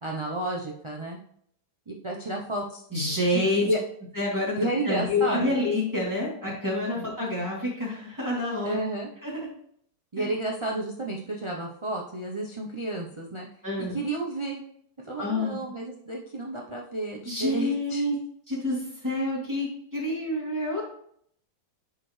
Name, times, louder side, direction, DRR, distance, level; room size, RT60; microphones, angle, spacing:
voice 1, 0.0-1.2 1.9-2.8 3.2-3.8 4.6-5.5 7.0-7.1 8.6-9.1 10.1-13.5 13.9-14.6 15.0-18.0, right 2 dB, 30° right, -1 dB, 0.5 m, -31 dB
voice 2, 2.9-3.7 4.2-4.5 4.8-8.8 9.2-9.5 10.2-10.3 13.6-13.9 15.2-15.6 17.2-18.2 18.5-20.8, left 2 dB, 10° right, -5 dB, 2.8 m, -28 dB
9.9 x 5.0 x 3.2 m, 0.66 s
omnidirectional pair, 1.8 m